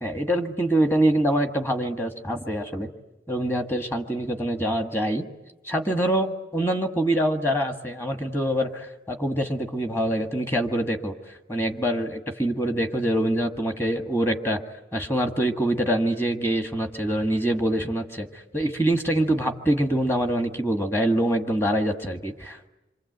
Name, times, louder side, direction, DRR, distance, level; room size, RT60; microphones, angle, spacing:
voice 1, 0.0-2.9 3.3-5.3 5.6-14.6 14.9-22.7, right 1 dB, 15° left, 5 dB, 1.6 m, -25 dB
27.5 x 24.5 x 8.0 m, 1.0 s
head